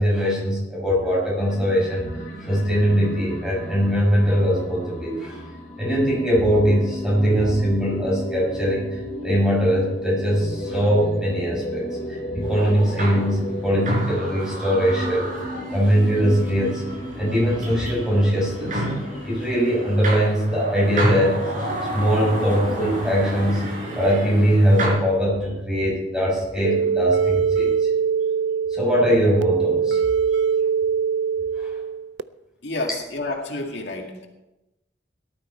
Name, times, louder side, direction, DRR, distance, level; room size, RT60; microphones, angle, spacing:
voice 1, 0.0-2.1 2.4-5.4 5.8-15.3 15.7-16.9 17.2-18.9 19.2-21.5 21.9-23.7 24.0-27.9 28.7-30.0 31.6-31.7, equal, 5° right, -4 dB, 7.1 m, -21 dB
sound 1, 1.4-20.0, equal, 50° left, 3.5 m, -34 dB
sound 2, 12.4-24.9, right 1 dB, 45° right, 5.3 m, -30 dB
sound 3, 26.6-32.2, right 6 dB, 80° right, 0.5 m, -22 dB
voice 2, 32.6-34.3, left 2 dB, 75° left, 1 dB, 2.1 m, -29 dB
18.0 x 12.5 x 4.4 m, 0.97 s
head